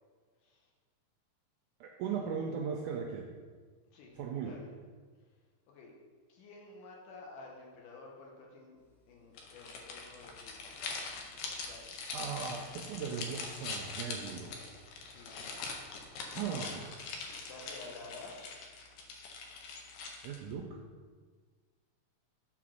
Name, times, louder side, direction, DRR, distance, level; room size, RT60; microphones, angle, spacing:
voice 1, 1.8-3.3 4.2-4.6 12.1-14.6 16.3-17.1 20.2-20.8, right 6 dB, 85° right, 1 dB, 1.8 m, -38 dB
voice 2, 3.9-4.7 5.7-5.9 6.3-8.8 9.1-10.7 11.3-11.9 15.0-15.6 17.3-18.4, left 3 dB, 70° left, -1 dB, 2.5 m, -51 dB
sound 1, 9.3-20.5, left 4 dB, 90° left, 2.7 m, -43 dB
6.8 x 3.9 x 6.3 m, 1.5 s
omnidirectional pair, 4.1 m